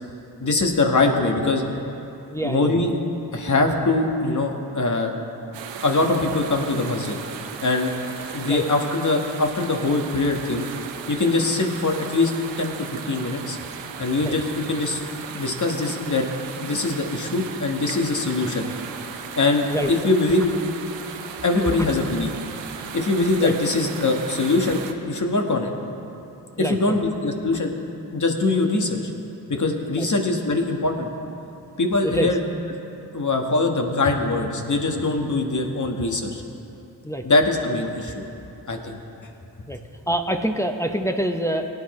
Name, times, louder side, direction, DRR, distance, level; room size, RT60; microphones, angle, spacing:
voice 1, 0.4-1.6 2.4-2.9 3.3-5.1 5.8-7.2 7.6-7.9 8.3-10.7 11.1-12.3 12.6-13.6 14.0-15.0 15.3-16.3 16.6-18.7 19.4-20.5 21.4-22.3 22.9-24.8 25.0-25.7 26.6-27.7 28.1-29.1 29.5-31.1 31.8-32.4 33.1-36.4 37.2-38.2 38.7-39.0, left 2 dB, 45° left, 3 dB, 1.5 m, -22 dB
voice 2, 2.3-2.9 8.4-8.6 14.2-14.4 19.7-19.9 23.4-23.5 26.6-27.0 30.0-30.1 32.0-32.3 37.0-37.2 39.7-39.8 40.1-41.7, right 1 dB, 5° left, 4 dB, 0.8 m, -26 dB
sound 1, 5.5-24.9, right 6 dB, 90° right, 0.8 m, -36 dB
18.0 x 9.6 x 3.2 m, 2.9 s
supercardioid pair, 45°, 43 cm